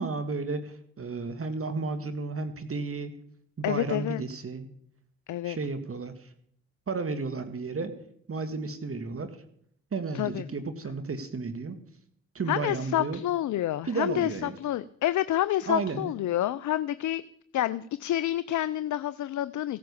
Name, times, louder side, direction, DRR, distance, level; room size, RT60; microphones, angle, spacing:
voice 1, 0.0-3.1 3.6-4.7 5.4-6.3 6.9-7.9 8.3-9.3 9.9-11.8 12.4-13.2 13.8-14.6 15.7-16.1, right 4 dB, 40° right, 9 dB, 1.9 m, -33 dB
voice 2, 3.6-4.2 5.3-5.6 10.1-10.4 12.5-17.2 17.5-19.8, left 13 dB, 55° left, 15 dB, 0.6 m, -28 dB
16.0 x 9.4 x 7.0 m, 0.68 s
hypercardioid pair, 40°, 34 cm